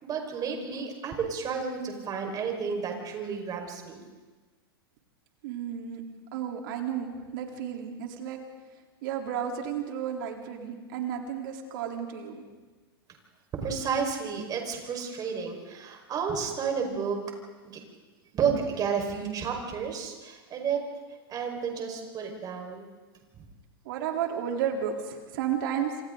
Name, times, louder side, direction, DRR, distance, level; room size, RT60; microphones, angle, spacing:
voice 1, 0.0-4.0 13.6-17.2 17.6-17.8 18.3-20.8 21.3-22.9 23.3-23.4, right 6 dB, 30° right, 2 dB, 5.2 m, -31 dB
voice 2, 5.4-6.0 6.3-8.4 9.0-12.4 23.9-25.9, right 8 dB, 60° right, 2 dB, 3.7 m, -32 dB
27.5 x 27.0 x 4.0 m, 1.3 s
hypercardioid pair, 110°, 13 cm